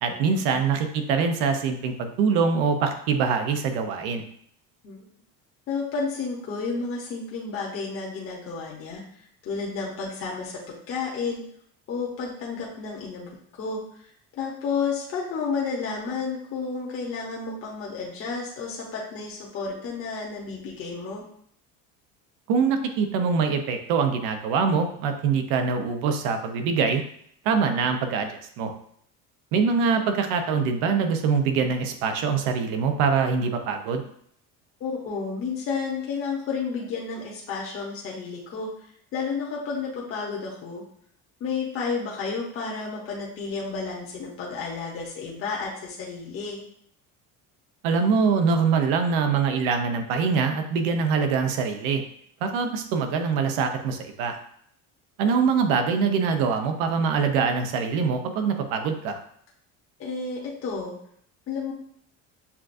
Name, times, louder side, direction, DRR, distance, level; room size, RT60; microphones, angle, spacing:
voice 1, 0.0-4.2 22.5-27.0 27.4-28.7 29.5-34.0 47.8-52.0 52.4-54.4 55.2-59.2, right 5 dB, 85° right, 6 dB, 0.8 m, -24 dB
voice 2, 5.7-11.4 11.9-13.3 13.6-14.1 14.4-21.2 34.8-40.8 41.4-46.6 60.0-61.0 61.5-61.7, left 5 dB, 40° left, -3 dB, 1.0 m, -31 dB
7.0 x 2.4 x 2.6 m, 0.66 s
cardioid pair, 140°, 34 cm